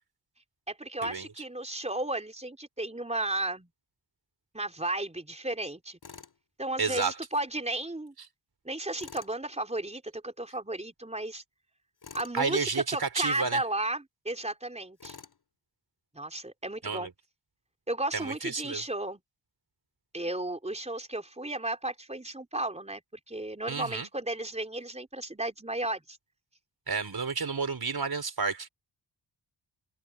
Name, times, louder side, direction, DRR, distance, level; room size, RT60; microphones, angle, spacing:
voice 1, 0.7-3.7 4.5-6.0 6.6-8.1 8.6-11.4 12.1-15.2 16.1-17.1 17.9-19.2 20.1-23.0 23.3-26.2, right 2 dB, 15° right, 3.9 m, -34 dB
Tools, 6.0-6.4 9.0-9.4 12.0-12.4 15.0-15.4, left 5 dB, 50° left, 3.5 m, -47 dB
voice 2, 6.8-7.2 12.3-13.6 16.8-17.1 18.1-18.9 23.7-24.1 26.9-28.7, right 4 dB, 50° right, 4.4 m, -31 dB
cardioid pair, 60°, 47 cm